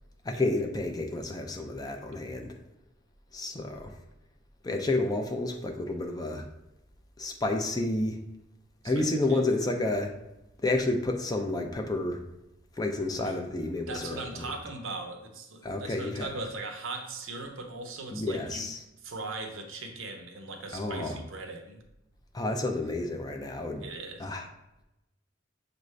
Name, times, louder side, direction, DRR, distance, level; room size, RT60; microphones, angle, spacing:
voice 1, 0.2-2.6 3.3-4.0 4.6-6.5 7.2-8.2 8.8-10.1 10.6-12.2 12.8-14.4 15.6-16.3 18.1-18.8 20.7-21.2 22.3-23.9 24.2-24.5, left 2 dB, 20° left, 4 dB, 0.4 m, -30 dB
voice 2, 8.8-9.4 13.2-13.4 13.9-18.7 19.0-21.8 23.8-24.4, right 3 dB, 75° right, 4 dB, 0.7 m, -39 dB
6.4 x 2.5 x 3.2 m, 0.91 s
head